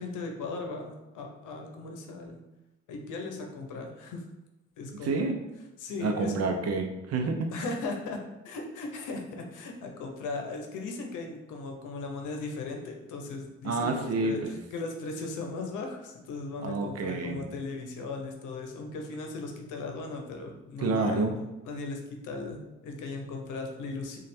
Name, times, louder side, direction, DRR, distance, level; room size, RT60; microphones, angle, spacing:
voice 1, 0.0-2.4 2.9-4.2 4.8-5.3 5.8-6.3 7.5-14.4 14.7-21.3 21.6-24.2, left 3 dB, 80° left, 3 dB, 0.7 m, -37 dB
voice 2, 5.0-5.4 6.0-7.5 13.6-14.5 16.6-17.4 20.8-21.4, right 3 dB, 55° right, 4 dB, 0.6 m, -28 dB
3.1 x 2.4 x 4.3 m, 0.98 s
cardioid pair, 90°, 30 cm